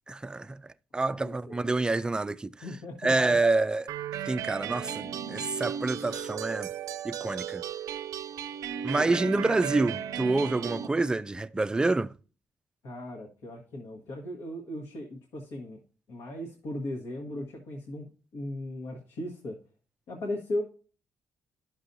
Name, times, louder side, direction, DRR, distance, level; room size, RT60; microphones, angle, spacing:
voice 1, 0.1-2.7 3.0-3.9 4.3-6.7 7.0-7.6 8.8-12.2, right 2 dB, 15° right, 0.3 m, -27 dB
voice 2, 1.2-1.7 2.6-3.3 9.0-9.1 12.8-15.8 16.1-19.6 20.1-20.6, left 1 dB, 80° left, 1.4 m, -37 dB
sound 1, 3.9-10.9, right 9 dB, 80° right, 0.5 m, -35 dB
11.0 x 6.1 x 2.6 m
cardioid pair, 95°, 6 cm